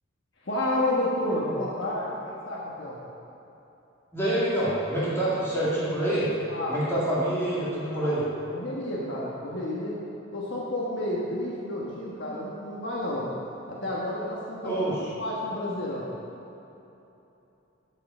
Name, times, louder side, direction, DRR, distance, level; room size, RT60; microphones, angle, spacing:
voice 1, 0.4-3.0 6.5-6.8 7.9-8.1 8.5-9.9 10.3-13.2 13.7-14.8 15.2-16.1, left 1 dB, 60° left, -5 dB, 1.3 m, -30 dB
voice 2, 4.1-6.3 6.7-8.2 14.6-15.0, right 1 dB, 10° left, -10 dB, 2.4 m, -26 dB
10.5 x 5.6 x 6.6 m, 3.0 s
head